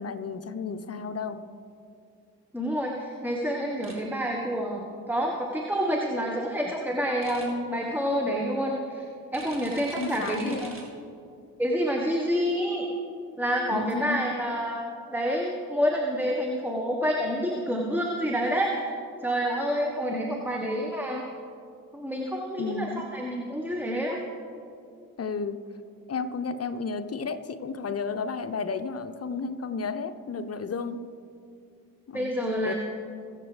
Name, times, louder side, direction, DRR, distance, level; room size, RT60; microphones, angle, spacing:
voice 1, 0.0-1.4 10.0-10.8 13.7-14.3 20.1-20.5 22.6-23.0 25.2-25.6 26.1-31.0 32.1-32.3 32.6-32.7, left 4 dB, 35° left, 9 dB, 1.0 m, -32 dB
voice 2, 2.5-9.0 9.3-10.7 11.6-12.9 13.4-18.9 19.2-21.2 21.9-24.2 32.1-32.7, equal, 5° right, 0 dB, 1.5 m, -28 dB
sound 1, 3.8-3.9 7.2-7.4 9.3-10.8, right 2 dB, 30° right, 3.2 m, -45 dB
22.0 x 7.5 x 3.4 m, 2.4 s
hypercardioid pair, 40°, 44 cm